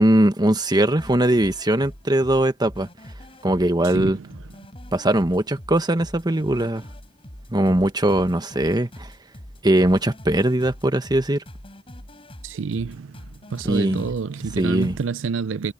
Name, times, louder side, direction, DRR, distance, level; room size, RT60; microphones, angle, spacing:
voice 1, 0.0-2.9 3.4-4.2 4.9-6.8 7.5-9.1 9.6-11.4 13.6-14.1 14.6-15.0, right 1 dB, 20° right, 1.3 m, -20 dB
sound 1, 1.0-15.1, equal, 30° left, 5.8 m, -43 dB
voice 2, 3.9-4.2 12.4-13.2 13.5-15.7, right 5 dB, 85° right, 0.5 m, -28 dB
head